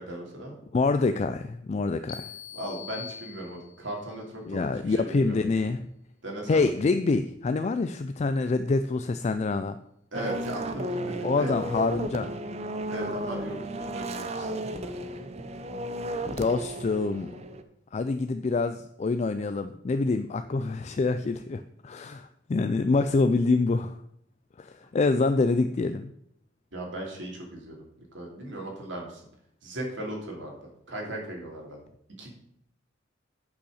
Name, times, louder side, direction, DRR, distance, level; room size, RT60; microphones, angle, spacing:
voice 1, 0.0-0.5 2.5-5.7 6.2-6.6 10.1-11.6 12.9-15.2 26.7-27.8 28.1-29.2 29.6-30.6 30.9-31.8 32.2-32.3, right 1 dB, 75° right, -1 dB, 2.7 m, -37 dB
voice 2, 0.7-2.3 4.5-5.8 6.5-9.8 11.2-12.3 16.2-17.3 17.9-24.0 24.6-26.1, left 3 dB, 35° left, 10 dB, 0.3 m, -26 dB
sound 1, 2.1-4.0, left 9 dB, 80° left, 1.3 m, -43 dB
British Touring Cars at Thruxton - Qualifying, 10.1-17.6, right 1 dB, 35° right, 0.6 m, -34 dB
8.8 x 5.6 x 6.4 m, 0.74 s
head